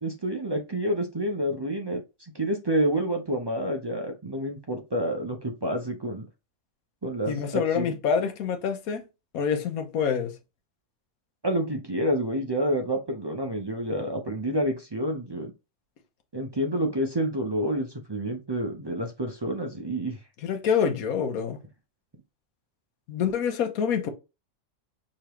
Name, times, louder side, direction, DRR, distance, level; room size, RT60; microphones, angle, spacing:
voice 1, 0.0-6.2 7.0-7.9 11.4-15.5 16.3-20.2, right 1 dB, 35° right, 0.4 m, -28 dB
voice 2, 7.3-9.0 9.3-10.3 20.4-21.6 23.1-24.1, left 7 dB, 85° left, 1.3 m, -26 dB
5.0 x 3.2 x 3.0 m
omnidirectional pair, 1.5 m